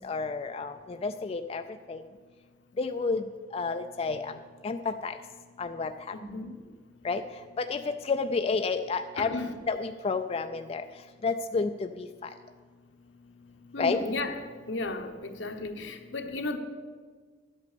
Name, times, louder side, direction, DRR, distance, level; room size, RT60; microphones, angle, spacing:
voice 1, 0.0-1.6 1.9-2.0 2.8-3.2 3.5-4.3 4.6-5.1 5.6-5.9 7.0-7.2 7.7-9.3 9.7-10.8 11.2-11.7 12.0-12.1 13.8-14.0, left 4 dB, 35° left, 7 dB, 0.4 m, -30 dB
voice 2, 6.1-6.6 9.2-9.5 13.7-14.4 14.7-16.6, left 2 dB, 80° left, 5 dB, 1.1 m, -34 dB
11.5 x 8.3 x 6.8 m, 1.5 s
head